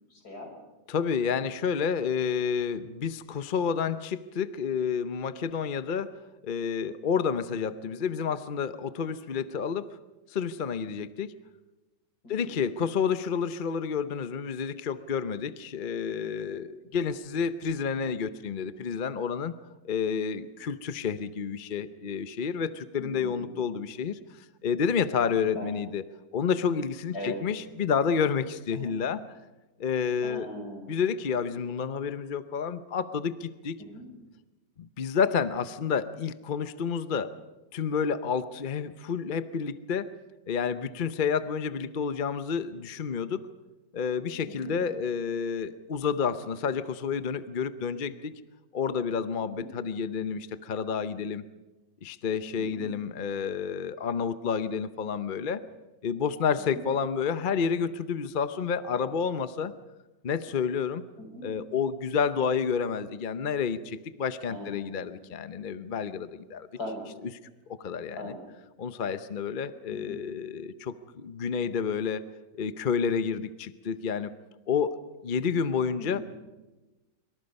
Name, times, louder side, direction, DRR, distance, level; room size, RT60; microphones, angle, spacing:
voice 1, 0.1-0.5 12.2-12.5 23.0-23.6 25.6-25.7 27.1-27.4 28.8-28.9 30.2-30.9 33.8-34.0 44.5-44.7 49.5-49.6 52.6-52.9 56.7-56.8 61.2-61.4 64.5-65.0 66.8-67.1 68.1-68.4 69.9-70.2 76.0-76.2, left 1 dB, 60° left, 3 dB, 5.9 m, -40 dB
voice 2, 0.9-6.2 6.4-9.9 10.3-11.3 12.3-19.5 19.8-26.0 26.3-29.2 29.8-30.5 30.9-33.8 34.8-37.3 37.7-40.1 40.5-43.4 43.9-48.3 48.7-51.4 52.0-55.6 56.0-59.7 60.2-61.0 61.4-66.7 67.7-68.3 68.8-72.3 72.6-74.3 74.7-75.0 75.2-76.2, left 6 dB, 45° left, 12 dB, 0.7 m, -30 dB
26.5 x 24.5 x 5.4 m, 1.1 s
omnidirectional pair, 1.8 m